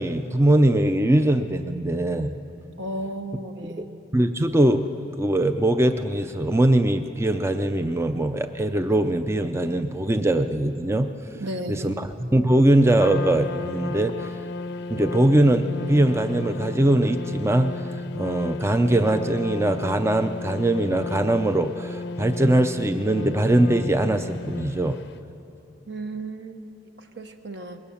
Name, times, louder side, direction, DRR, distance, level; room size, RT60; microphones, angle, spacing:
voice 1, 0.0-2.3 3.6-3.9 4.1-4.9 5.2-11.1 11.7-14.1 14.9-17.8 18.1-25.0, right 1 dB, 15° right, 8 dB, 0.5 m, -21 dB
voice 2, 2.8-4.0 11.4-12.0 25.9-26.6 27.2-27.8, right 1 dB, 65° right, 6 dB, 1.2 m, -34 dB
Trumpet, 13.0-25.1, left 3 dB, 65° left, 0.6 m, -34 dB
21.5 x 18.5 x 7.1 m, 2.8 s
head